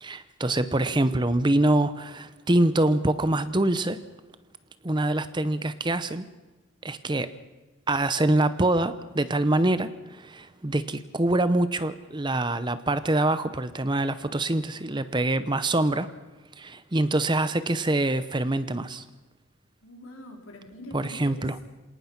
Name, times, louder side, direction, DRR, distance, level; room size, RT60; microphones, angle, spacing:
voice 1, 0.0-4.0 4.8-6.3 6.8-7.3 7.9-16.1 16.6-19.0 20.9-21.5, right 2 dB, 20° right, 13 dB, 0.7 m, -25 dB
voice 2, 19.8-21.6, equal, 75° left, 1 dB, 4.6 m, -44 dB
26.5 x 18.5 x 5.9 m, 1.2 s
head